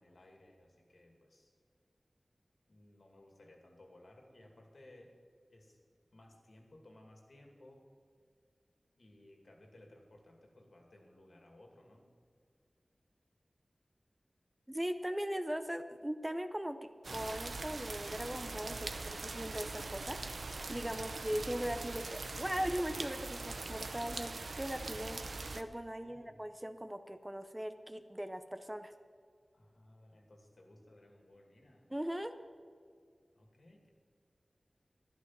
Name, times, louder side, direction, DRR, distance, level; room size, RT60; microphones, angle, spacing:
voice 1, 0.0-1.5 2.7-5.2 5.5-5.8 6.1-7.9 9.0-12.1 20.9-21.4 26.0-26.4 29.5-31.9 33.3-33.9, left 1 dB, 70° left, 1 dB, 2.4 m, -60 dB
voice 2, 14.7-25.2 25.5-28.9 31.9-32.3, equal, 15° right, 9 dB, 0.7 m, -39 dB
sound 1, 17.0-25.6, right 3 dB, 75° right, 0.7 m, -42 dB
11.0 x 11.0 x 6.0 m, 2.1 s
wide cardioid pair, 60°, 0 cm